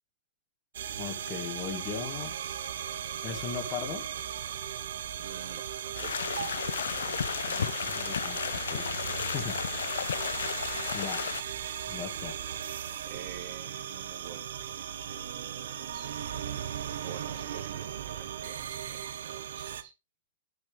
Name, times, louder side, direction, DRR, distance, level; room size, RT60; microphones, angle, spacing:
sound 1, 0.7-19.8, right 9 dB, 70° right, 1.1 m, -37 dB
voice 1, 1.0-2.4 3.2-4.1 7.5-8.9 9.2-9.9 10.9-11.2 11.9-12.3, left 7 dB, 35° left, 5 dB, 2.2 m, -38 dB
voice 2, 5.2-6.2 13.0-16.1 17.0-19.9, right 9 dB, 50° right, 1 dB, 2.2 m, -48 dB
sound 2, 5.9-11.4, left 8 dB, 80° left, 0.6 m, -33 dB
9.5 x 8.8 x 3.3 m, 0.25 s
hypercardioid pair, 135°, 0 cm